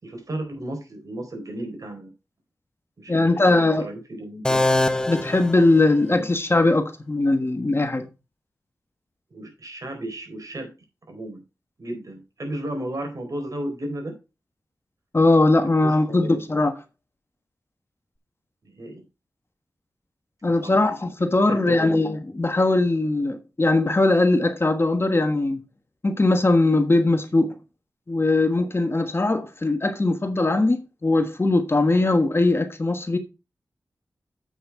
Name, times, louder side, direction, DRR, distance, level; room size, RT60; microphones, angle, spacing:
voice 1, 0.0-2.1 3.0-4.6 6.1-6.3 9.3-10.7 11.1-11.4 11.8-14.1 15.8-16.5 18.6-19.0 20.6-21.0 21.5-22.0, right 1 dB, 55° right, 3.9 m, -34 dB
voice 2, 3.1-3.9 5.1-8.1 15.1-16.7 20.4-25.6 26.0-27.5 28.1-33.2, left 2 dB, 35° left, 1.4 m, -20 dB
sound 1, 4.4-6.3, left 2 dB, 10° left, 0.6 m, -24 dB
8.1 x 6.3 x 4.6 m
cardioid pair, 60°, 7 cm